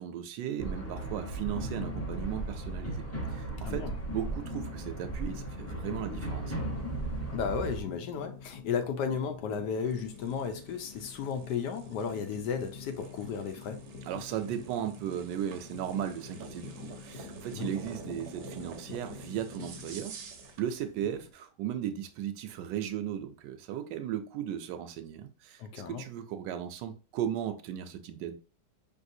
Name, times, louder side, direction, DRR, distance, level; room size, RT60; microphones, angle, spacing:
voice 1, 0.0-6.5 14.0-20.1 20.6-25.6 25.9-28.4, right 10 dB, 85° right, 1.2 m, -36 dB
sound 1, 0.6-7.8, right 2 dB, 10° left, 0.8 m, -36 dB
voice 2, 3.6-3.9 7.3-13.8 17.6-17.7 25.6-26.0, left 6 dB, 75° left, 1.3 m, -34 dB
sound 2, 4.5-21.3, left 5 dB, 55° left, 0.8 m, -48 dB
sound 3, 9.7-20.7, right 5 dB, 60° right, 0.8 m, -49 dB
5.3 x 3.3 x 2.6 m
omnidirectional pair, 1.8 m